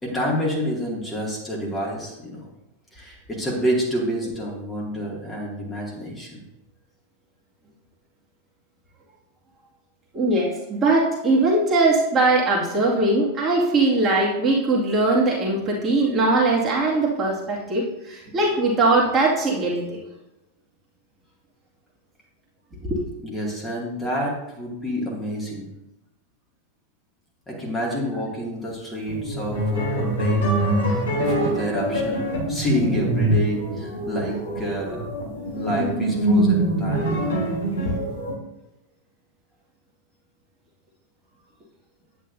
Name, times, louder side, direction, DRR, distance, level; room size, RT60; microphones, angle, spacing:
voice 1, 0.0-2.5 2.9-6.4 23.2-25.7 27.5-30.5 31.2-35.0 35.5-37.4, equal, 10° left, -3 dB, 2.3 m, -28 dB
voice 2, 10.1-20.0 22.8-23.0, right 2 dB, 25° right, -5 dB, 2.2 m, -21 dB
sound 1, 29.1-38.3, right 1 dB, 65° left, 3.3 m, -24 dB
9.7 x 8.9 x 2.7 m, 0.93 s
figure-of-eight pair, 90°, 0 cm